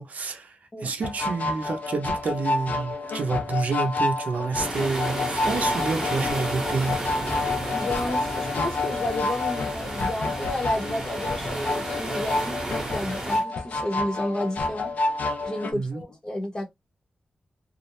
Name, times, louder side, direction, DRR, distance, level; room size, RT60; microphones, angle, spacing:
voice 1, 0.0-7.0 15.7-16.0, right 4 dB, 65° right, 0.6 m, -29 dB
sound 1, 1.0-15.7, left 3 dB, 70° left, 0.5 m, -29 dB
sound 2, 4.5-13.4, right 1 dB, 20° right, 0.9 m, -32 dB
voice 2, 7.7-12.6 12.9-14.9 15.5-16.7, left 1 dB, 30° left, 0.8 m, -31 dB
2.4 x 2.0 x 2.9 m
wide cardioid pair, 120°, 3 cm